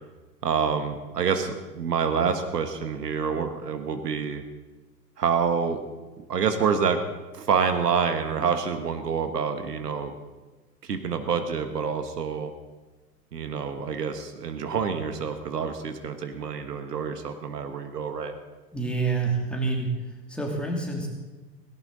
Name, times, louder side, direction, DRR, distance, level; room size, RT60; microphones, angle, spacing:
voice 1, 0.4-4.4 5.2-5.8 6.2-7.0 7.3-10.1 10.8-12.5 13.3-18.3, right 6 dB, 70° right, 8 dB, 1.6 m, -27 dB
voice 2, 18.7-19.9 20.3-21.1, right 3 dB, ahead, -1 dB, 2.7 m, -27 dB
17.5 x 17.0 x 4.0 m, 1.2 s
figure-of-eight pair, 105°, 49 cm